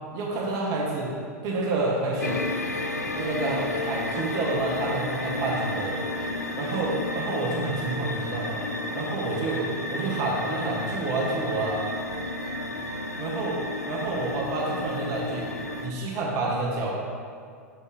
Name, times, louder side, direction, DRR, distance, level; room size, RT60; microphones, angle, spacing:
voice 1, 0.1-1.1 1.4-2.4 3.1-6.0 6.6-8.6 8.9-11.9 13.2-13.6 13.9-15.5 15.8-17.0, right 3 dB, 45° right, -2 dB, 1.4 m, -29 dB
sound 1, 2.2-15.9, left 2 dB, 80° left, 0.6 m, -32 dB
7.4 x 5.1 x 4.9 m, 2.2 s
figure-of-eight pair, 90°, 8 cm